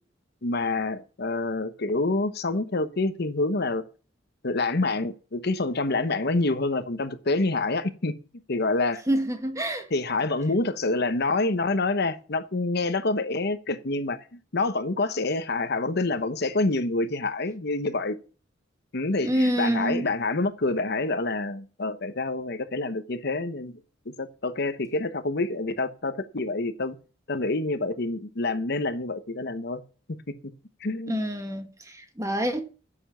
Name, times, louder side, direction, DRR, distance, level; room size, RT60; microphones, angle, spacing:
voice 1, 0.4-3.8 4.4-8.1 8.5-9.0 9.9-14.3 14.5-18.2 18.9-23.7 24.1-27.0 27.3-29.8 30.8-31.2, left 2 dB, 55° left, 1.0 m, -27 dB
voice 2, 9.1-9.8 19.2-20.1 31.1-32.6, right 1 dB, 15° right, 1.7 m, -27 dB
10.5 x 7.0 x 7.1 m
head